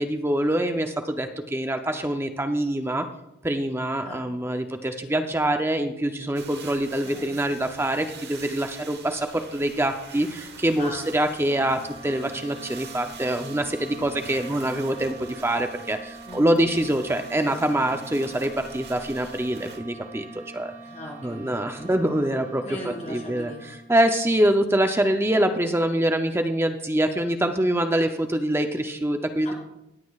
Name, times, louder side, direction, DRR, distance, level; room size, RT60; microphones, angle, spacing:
voice 1, 0.0-3.1 3.4-20.7 21.2-22.6 23.1-23.5 23.9-29.5, right 1 dB, 10° right, 6 dB, 0.5 m, -25 dB
sound 1, 6.4-19.8, right 5 dB, 50° right, 1.1 m, -45 dB
voice 2, 7.0-7.3 10.8-11.1 11.4-11.8 13.7-14.2 16.2-16.7 20.8-21.9 22.6-23.7 29.4-29.5, left 1 dB, 30° left, -4 dB, 4.1 m, -40 dB
sound 2, 11.4-24.1, right 3 dB, 65° right, 2.9 m, -44 dB
23.0 x 8.3 x 2.4 m, 0.87 s
head